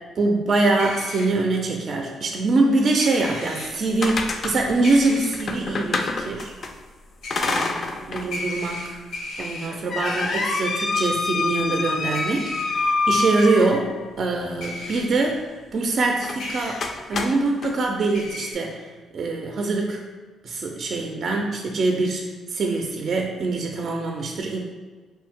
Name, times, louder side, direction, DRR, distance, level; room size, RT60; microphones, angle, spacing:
voice 1, 0.2-6.5 7.5-7.7 8.1-9.0 9.4-16.8 17.1-18.9 19.1-20.0 20.4-24.6, right 3 dB, 50° right, 2 dB, 0.4 m, -24 dB
sound 1, 0.8-1.3 3.0-3.7 4.8-5.3 7.2-7.7 8.3-9.7 10.0-10.6 12.1-12.6 13.4-13.5 14.6-15.0 16.4-16.8 18.1-18.5, left 2 dB, 80° left, 0.8 m, -34 dB
sound 2, 3.6-6.7 7.3-8.3 8.7-8.8 9.4-14.1 16.2-16.4 16.8-17.7, left 3 dB, 50° left, 0.4 m, -26 dB
3.0 x 2.6 x 3.5 m, 1.3 s
cardioid pair, 90°, 0 cm